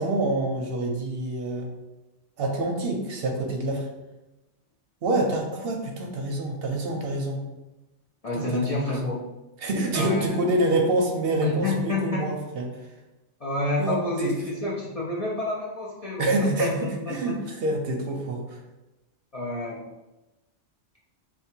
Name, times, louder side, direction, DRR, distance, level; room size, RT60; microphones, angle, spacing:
voice 1, 0.0-1.7 2.4-3.9 5.0-7.4 8.3-9.1 9.6-12.7 13.8-14.4 16.2-18.6, right 2 dB, 60° right, 2 dB, 0.7 m, -27 dB
voice 2, 8.2-9.3 9.9-10.4 11.4-12.2 13.4-17.3 19.3-19.8, left 2 dB, 55° left, -5 dB, 0.4 m, -29 dB
3.4 x 2.2 x 4.3 m, 1.0 s
omnidirectional pair, 1.2 m